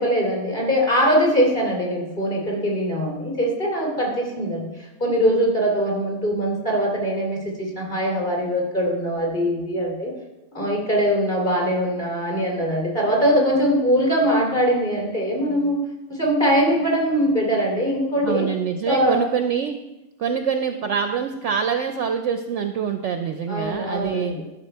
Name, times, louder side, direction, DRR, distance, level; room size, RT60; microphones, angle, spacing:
voice 1, 0.0-10.1 10.5-15.8 16.1-18.5 18.8-19.2 23.5-24.4, equal, 30° left, -2 dB, 2.7 m, -22 dB
voice 2, 18.2-19.8 20.2-24.3, right 7 dB, 65° right, 7 dB, 0.8 m, -25 dB
13.0 x 5.8 x 4.4 m, 0.99 s
omnidirectional pair, 1.6 m